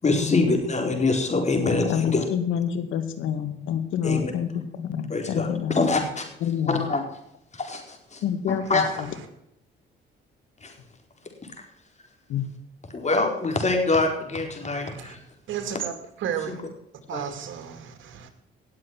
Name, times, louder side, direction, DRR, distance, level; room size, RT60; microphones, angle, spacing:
voice 1, 0.0-2.2 4.0-4.3 5.1-6.2 6.7-7.0 7.5-8.9 10.6-10.7 12.9-15.2 16.5-16.6 17.1-17.2, left 3 dB, 35° left, 4.5 m, -25 dB
voice 2, 1.9-4.5 4.8-5.8 6.4-6.8 8.2-9.1 12.3-12.5, left 9 dB, 85° left, 2.0 m, -27 dB
voice 3, 8.6-9.3 14.6-15.2 15.5-16.6 17.1-18.3, right 8 dB, 80° right, 2.5 m, -34 dB
18.5 x 7.8 x 6.1 m
cardioid pair, 90°, 20 cm